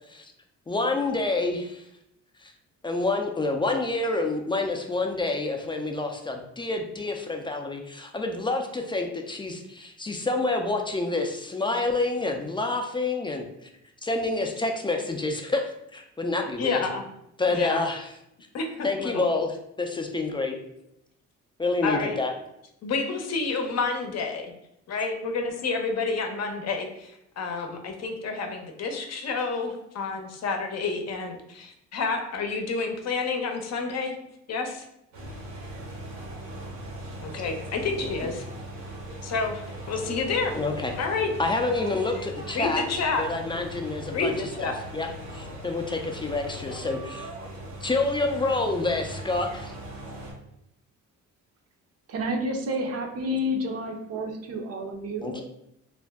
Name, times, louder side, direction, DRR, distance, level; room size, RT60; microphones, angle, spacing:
voice 1, 0.7-1.8 2.4-2.5 2.8-13.5 14.0-16.9 17.4-18.1 18.8-20.6 21.6-22.3 38.0-38.3 40.5-40.9 41.4-42.8 43.2-44.3 44.6-47.3 47.8-49.7 55.2-55.4, left 3 dB, 15° left, 3 dB, 0.3 m, -28 dB
voice 2, 16.6-17.1 17.5-17.8 18.5-19.3 21.8-22.2 22.8-24.5 24.9-34.1 34.5-34.8 37.2-38.4 39.2-40.6 41.0-41.3 42.5-43.2 44.1-44.8, left 4 dB, 60° left, 4 dB, 0.6 m, -29 dB
sound 1, 35.1-50.3, right 1 dB, 80° right, 1.0 m, -39 dB
voice 3, 52.1-55.4, equal, 55° right, 3 dB, 0.6 m, -30 dB
2.5 x 2.1 x 3.4 m, 0.79 s
cardioid pair, 90°, 30 cm